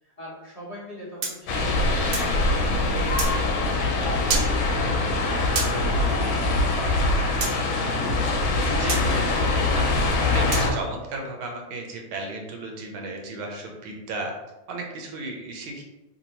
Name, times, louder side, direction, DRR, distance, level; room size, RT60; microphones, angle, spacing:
voice 1, 0.0-3.2, left 1 dB, 35° left, -9 dB, 0.6 m, -43 dB
Throw stones on window glass, 1.2-2.3 3.2-3.3 4.3-4.5 5.6-5.7 7.4-7.5 8.9-9.0 10.5-10.7, right 4 dB, 70° right, 0.8 m, -28 dB
sound 1, 1.5-10.7, left 2 dB, 85° left, 1.4 m, -23 dB
voice 2, 8.6-14.3 14.7-15.8, right 2 dB, 90° right, 1 dB, 1.5 m, -34 dB
3.4 x 2.7 x 2.8 m, 1.0 s
omnidirectional pair, 2.2 m